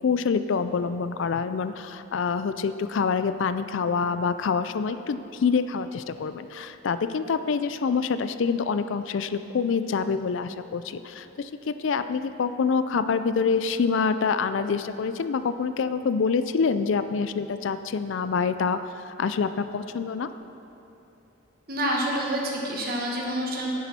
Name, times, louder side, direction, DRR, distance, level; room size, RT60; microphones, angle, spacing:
voice 1, 0.0-20.3, left 5 dB, 65° left, 11 dB, 0.4 m, -26 dB
voice 2, 21.7-23.8, right 1 dB, 45° right, -2 dB, 1.5 m, -27 dB
10.5 x 9.6 x 4.2 m, 3.0 s
head